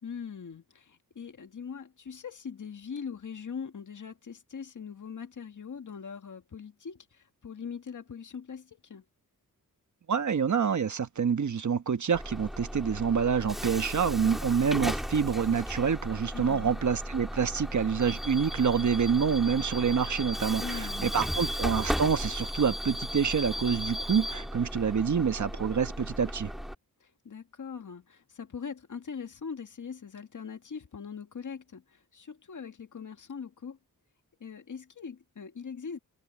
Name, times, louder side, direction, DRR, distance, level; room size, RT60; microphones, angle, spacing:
voice 1, 0.0-9.0 16.3-16.7 20.6-21.4 27.0-33.8 34.4-36.0, left 6 dB, 55° left, 1.9 m, -41 dB
voice 2, 10.1-26.5, right 6 dB, 55° right, 1.2 m, -27 dB
Bus / Alarm, 12.1-26.7, equal, ahead, 2.5 m, -35 dB
wide cardioid pair, 95°, 35 cm